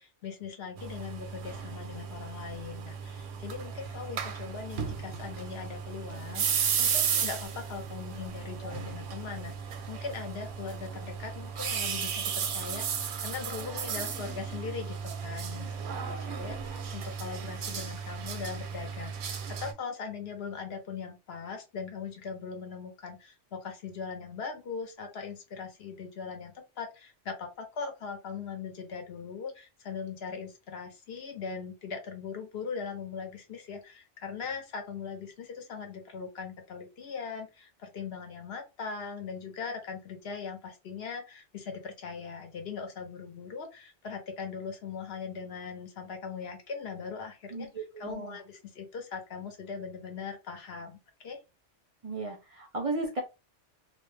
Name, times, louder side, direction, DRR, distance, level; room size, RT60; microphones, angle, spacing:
voice 1, 0.0-51.4, left 5 dB, 60° left, 4 dB, 0.9 m, -40 dB
sound 1, 0.8-19.7, right 7 dB, 85° right, 0.9 m, -34 dB
voice 2, 47.5-48.4 52.0-53.2, right 2 dB, 50° right, 0 dB, 0.4 m, -35 dB
2.4 x 2.1 x 3.1 m, 0.27 s
omnidirectional pair, 1.2 m